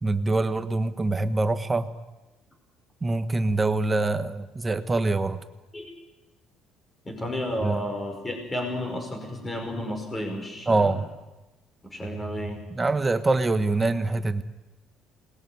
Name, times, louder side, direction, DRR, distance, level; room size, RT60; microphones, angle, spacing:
voice 1, 0.0-1.9 3.0-5.4 7.6-7.8 10.7-11.0 12.7-14.4, right 2 dB, 15° right, 10 dB, 1.2 m, -24 dB
voice 2, 7.0-11.0 11.8-12.9, equal, 15° left, 3 dB, 5.4 m, -32 dB
28.5 x 20.5 x 9.5 m, 1.1 s
cardioid pair, 155°, 0 cm